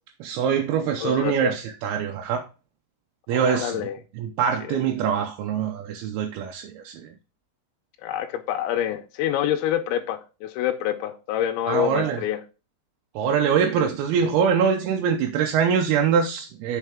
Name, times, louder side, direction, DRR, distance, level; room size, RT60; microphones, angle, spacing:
voice 1, 0.2-2.5 3.3-3.9 4.2-7.1 11.7-12.2 13.2-16.8, right 7 dB, 75° right, 2.4 m, -23 dB
voice 2, 1.0-1.5 3.3-4.0 4.7-4.8 8.0-12.4, left 11 dB, 85° left, 3.1 m, -27 dB
7.7 x 5.6 x 3.5 m
omnidirectional pair, 5.2 m